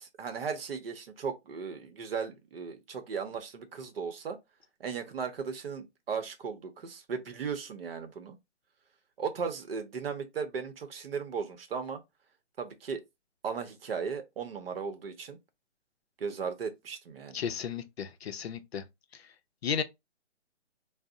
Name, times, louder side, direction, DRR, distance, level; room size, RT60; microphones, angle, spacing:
voice 1, 0.0-4.4 4.8-8.4 9.2-12.0 12.6-13.0 13.4-15.4 16.2-17.4, right 6 dB, 55° right, 0.8 m, -36 dB
voice 2, 17.3-18.8 19.1-19.2 19.6-19.8, left 7 dB, 60° left, 0.5 m, -34 dB
2.6 x 2.0 x 3.8 m
hypercardioid pair, 150°, 36 cm